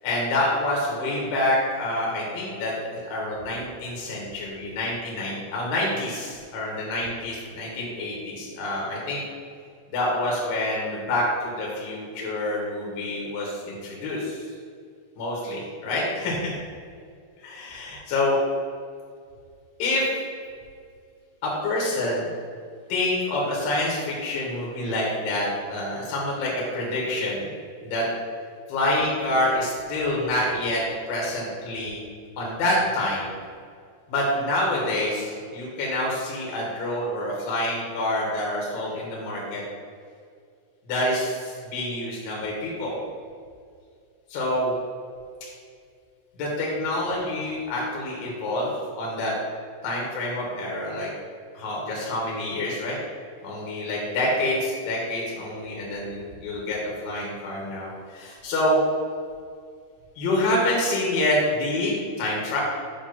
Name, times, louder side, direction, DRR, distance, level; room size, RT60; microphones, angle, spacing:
voice 1, 0.0-9.2 9.9-14.4 15.2-16.5 17.4-18.4 19.8-20.0 21.4-22.3 22.9-27.5 27.8-28.1 28.7-30.8 31.1-32.0 32.4-33.3 34.1-39.6 40.9-43.0 44.3-44.7 46.4-49.3 49.8-51.1 51.5-53.0 53.4-58.8 60.2-62.6, left 1 dB, 70° left, -4 dB, 2.2 m, -27 dB
7.2 x 2.8 x 5.8 m, 2.2 s
omnidirectional pair, 5.8 m